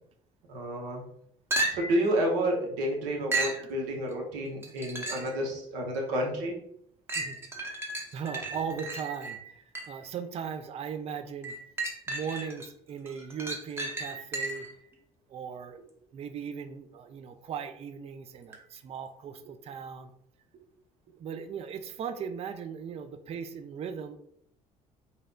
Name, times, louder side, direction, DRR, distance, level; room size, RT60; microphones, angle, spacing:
voice 1, 0.5-1.0 1.7-6.6, right 1 dB, 70° right, 0 dB, 0.8 m, -30 dB
sound 1, 1.5-2.1 3.3-3.6 4.6-5.4 5.9-6.0 7.1-10.1 11.4-12.7 13.1-14.8 18.5-18.6, right 2 dB, 15° right, 0.8 m, -34 dB
voice 2, 7.1-7.9 8.1-11.6 12.1-14.7 15.3-15.8 16.1-20.1 21.2-24.2, right 7 dB, 35° right, 9 dB, 0.3 m, -38 dB
3.3 x 2.7 x 2.3 m, 0.71 s
hypercardioid pair, 55°, 18 cm